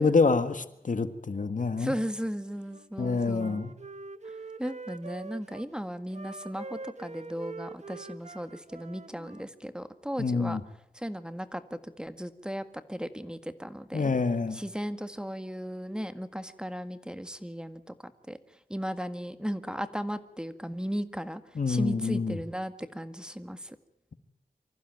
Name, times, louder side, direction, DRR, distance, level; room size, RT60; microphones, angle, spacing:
voice 1, 0.0-2.0 3.0-3.7 10.2-10.6 13.9-14.6 21.5-22.4, left 4 dB, 60° left, 11 dB, 1.6 m, -27 dB
voice 2, 1.8-3.6 4.6-10.6 10.9-14.1 14.5-18.4 18.7-21.4 21.7-23.8, equal, 5° right, 11 dB, 1.8 m, -36 dB
Wind instrument woodwind instrument, 2.7-5.7 6.1-9.5, right 3 dB, 50° right, 1.5 m, -44 dB
25.0 x 15.0 x 9.2 m, 0.80 s
cardioid pair, 50°, 15 cm